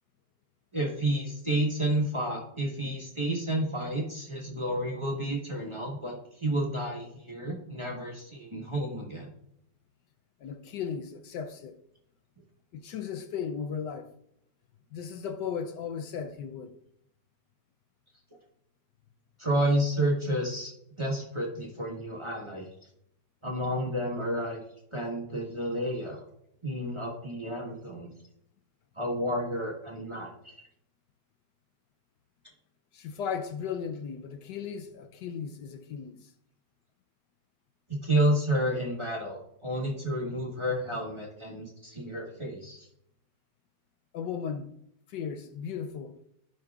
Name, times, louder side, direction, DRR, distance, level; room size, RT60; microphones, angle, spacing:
voice 1, 0.7-9.3 19.4-20.7 21.0-22.7 23.4-24.6 24.9-26.2 26.6-28.1 28.9-30.5 37.9-42.8, right 1 dB, 20° right, 1.1 m, -30 dB
voice 2, 10.4-11.8 12.7-14.1 14.9-16.8 32.9-36.3 44.1-44.7 45.1-46.2, left 7 dB, 75° left, 1.2 m, -36 dB
15.0 x 5.4 x 2.4 m
omnidirectional pair, 2.0 m